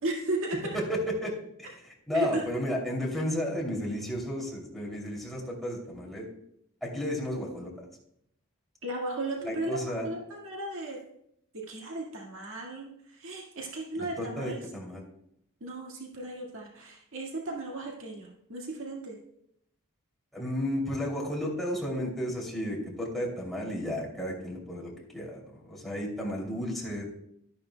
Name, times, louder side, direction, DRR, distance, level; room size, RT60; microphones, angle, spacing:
voice 1, 0.0-0.8 2.1-2.4 8.8-9.7 10.0-11.0 11.5-14.6 15.6-19.2, right 2 dB, 65° right, -2 dB, 1.9 m, -35 dB
voice 2, 0.7-1.3 1.6-6.3 6.8-7.9 9.4-10.1 13.9-15.0 20.3-27.1, equal, ahead, -4 dB, 2.8 m, -33 dB
12.5 x 11.0 x 2.2 m, 0.74 s
head